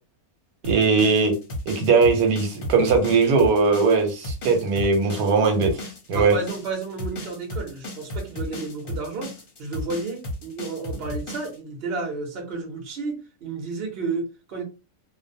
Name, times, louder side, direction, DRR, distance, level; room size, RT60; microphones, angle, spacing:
sound 1, 0.6-11.6, left 1 dB, 50° left, 0.8 m, -34 dB
voice 1, 0.6-1.3 1.7-5.7 6.1-6.3, right 4 dB, 85° right, 1.1 m, -19 dB
voice 2, 6.1-9.3 9.6-14.6, right 3 dB, 50° right, 0.9 m, -31 dB
2.5 x 2.1 x 2.6 m
omnidirectional pair, 1.5 m